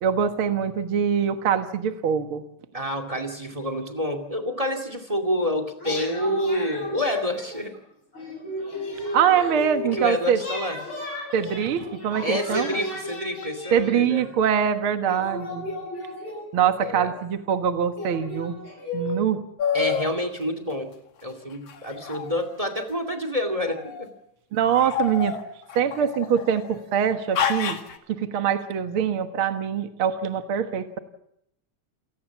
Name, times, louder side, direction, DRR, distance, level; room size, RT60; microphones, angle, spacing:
voice 1, 0.0-2.4 9.1-10.4 11.3-12.7 13.7-15.7 16.5-18.6 18.9-19.4 24.5-25.4 25.8-27.8 28.1-31.0, right 8 dB, 50° right, 8 dB, 1.8 m, -23 dB
voice 2, 2.7-7.7 9.9-10.8 12.2-14.3 16.8-17.1 19.7-20.9 21.2-24.1, left 1 dB, 15° right, 9 dB, 2.0 m, -28 dB
sound 1, 5.8-7.8 8.1-10.0 10.4-14.3 15.0-16.8 17.4-17.5 17.9-19.2, left 1 dB, 40° left, 7.9 m, -35 dB
sound 2, 19.6-20.2 21.7-22.9 23.6-24.1 24.6-26.7 27.3-28.0, left 7 dB, 55° left, 2.7 m, -29 dB
28.5 x 19.0 x 7.2 m, 0.77 s
omnidirectional pair, 3.6 m